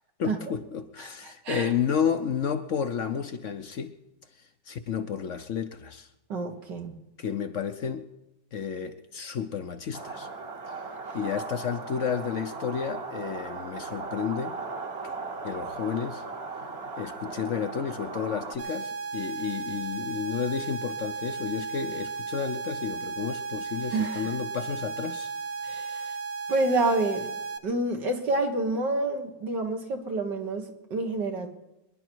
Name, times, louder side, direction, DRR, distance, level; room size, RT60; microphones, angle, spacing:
voice 1, 0.2-4.0 4.4-6.1 7.2-8.1 8.5-10.3 11.1-14.6 15.0-15.1 15.4-16.2 17.0-25.3, left 7 dB, 55° left, 0.9 m, -31 dB
voice 2, 1.0-1.7 6.3-7.0 23.9-24.3 25.6-26.1 26.5-27.3 27.6-31.5, right 2 dB, 80° right, 2.4 m, -28 dB
sound 1, 9.9-18.6, right 3 dB, 40° right, 1.4 m, -37 dB
sound 2, 18.6-27.6, right 4 dB, 60° right, 1.3 m, -35 dB
25.0 x 11.0 x 4.6 m
omnidirectional pair, 1.9 m